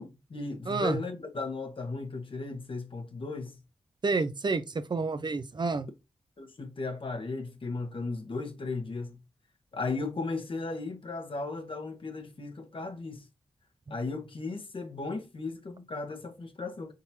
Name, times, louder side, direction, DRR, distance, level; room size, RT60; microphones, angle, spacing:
voice 1, 0.0-3.5 6.4-9.2 9.7-13.2 13.9-16.9, left 3 dB, 55° left, 1.2 m, -36 dB
voice 2, 0.7-1.0 4.0-5.9, right 4 dB, 45° right, 0.6 m, -29 dB
4.2 x 3.8 x 2.8 m
supercardioid pair, 40°, 11 cm